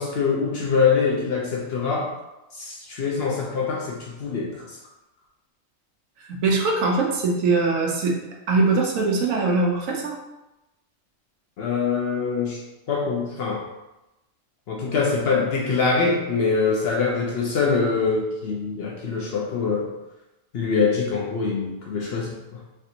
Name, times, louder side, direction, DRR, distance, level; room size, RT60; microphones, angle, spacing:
voice 1, 0.0-2.1 2.5-4.7 11.6-12.6 12.9-13.6 14.7-19.9 20.5-22.6, left 5 dB, 60° left, -3 dB, 0.7 m, -24 dB
voice 2, 6.2-8.2 8.5-10.2, right 3 dB, 80° right, 1 dB, 1.0 m, -22 dB
3.3 x 2.5 x 2.8 m, 0.97 s
omnidirectional pair, 1.4 m